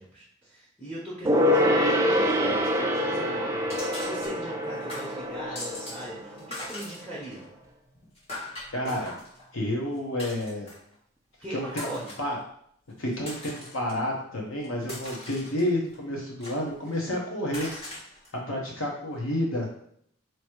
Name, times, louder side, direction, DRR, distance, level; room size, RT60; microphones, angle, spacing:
voice 1, 0.0-7.5 11.4-12.1 19.3-19.4, right 1 dB, 5° left, -6 dB, 1.1 m, -40 dB
Gong, 1.2-7.1 7.4-7.5, equal, 15° right, 0.4 m, -26 dB
sound 1, 1.4-3.2 3.7-4.6 4.9-6.1 6.3-10.9 11.7-12.3 12.9-13.9 14.4-15.9 16.4-17.1 17.5-18.3, left 1 dB, 30° left, 1.5 m, -41 dB
voice 2, 8.7-9.1 9.5-10.7 11.5-11.9 12.2-12.4 13.0-17.7 18.3-19.7, left 1 dB, 80° left, -1 dB, 1.3 m, -30 dB
3.2 x 3.1 x 4.7 m, 0.66 s
head